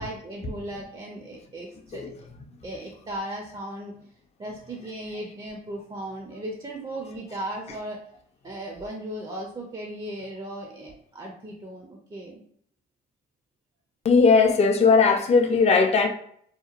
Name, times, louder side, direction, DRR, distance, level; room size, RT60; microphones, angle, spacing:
voice 1, 0.0-2.0 2.6-4.0 4.4-8.0 8.4-12.4, right 1 dB, 25° right, 0 dB, 0.5 m, -36 dB
voice 2, 14.0-16.1, left 4 dB, 35° left, 3 dB, 0.4 m, -18 dB
2.8 x 2.2 x 2.4 m, 0.64 s
cardioid pair, 90°, 20 cm